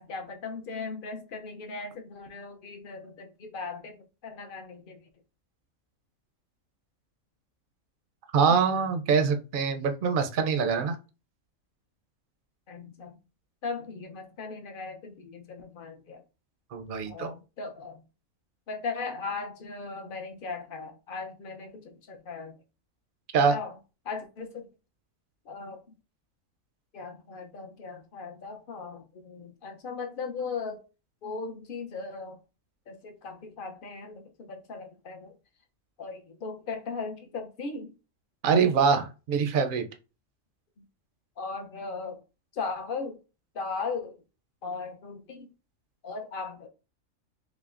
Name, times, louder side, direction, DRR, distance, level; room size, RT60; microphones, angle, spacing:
voice 1, 0.0-5.0 12.7-13.2 13.6-16.2 17.1-18.0 18.7-22.6 23.5-23.8 24.0-24.7 25.5-25.8 26.9-30.8 31.2-32.4 32.9-35.4 36.0-37.9 41.4-42.2 42.5-43.2 43.5-44.2 44.6-45.5 46.0-46.7, left 4 dB, 55° left, 0.7 m, -38 dB
voice 2, 8.3-11.0 16.7-17.3 23.3-23.6 38.4-39.9, right 6 dB, 55° right, 0.6 m, -24 dB
5.8 x 2.1 x 2.4 m
omnidirectional pair, 1.4 m